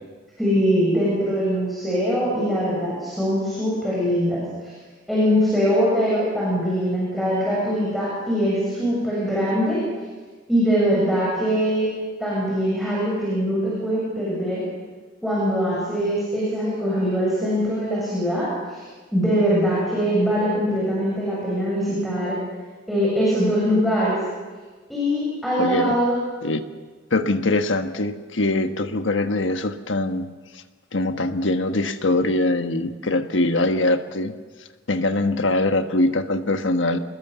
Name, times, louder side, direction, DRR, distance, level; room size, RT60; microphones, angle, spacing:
voice 1, 0.4-4.7 5.1-9.8 10.5-11.9 12.2-14.6 15.2-18.8 19.1-22.4 22.9-24.2 24.9-26.2, equal, ahead, -7 dB, 7.4 m, -22 dB
voice 2, 25.6-25.9 26.4-26.6 27.1-30.3 30.9-34.3 34.9-37.0, left 2 dB, 75° left, 8 dB, 1.4 m, -22 dB
26.5 x 21.0 x 7.0 m, 1.4 s
head